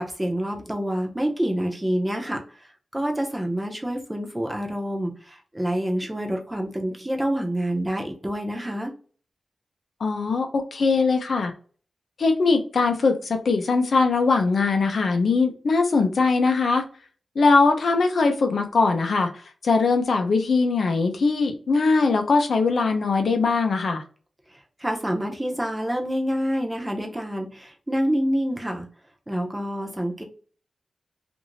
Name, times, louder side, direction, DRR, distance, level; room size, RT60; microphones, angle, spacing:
voice 1, 0.0-2.7 2.9-8.9 24.5-28.9 29.3-30.2, equal, 15° right, 2 dB, 0.7 m, -27 dB
voice 2, 10.0-11.5 12.2-16.9 17.4-24.0, left 4 dB, 75° left, 5 dB, 0.6 m, -21 dB
2.7 x 2.6 x 3.0 m, 0.41 s
wide cardioid pair, 95°, 0 cm